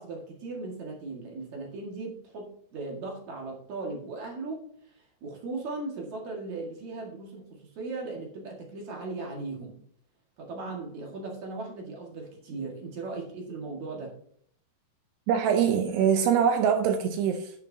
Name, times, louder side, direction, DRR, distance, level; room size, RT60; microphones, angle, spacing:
voice 1, 0.0-4.7 5.2-9.8 10.4-14.1, right 3 dB, 50° right, 2.6 m, -37 dB
voice 2, 15.3-17.5, right 7 dB, 80° right, 2.6 m, -23 dB
10.5 x 10.5 x 2.8 m
omnidirectional pair, 5.3 m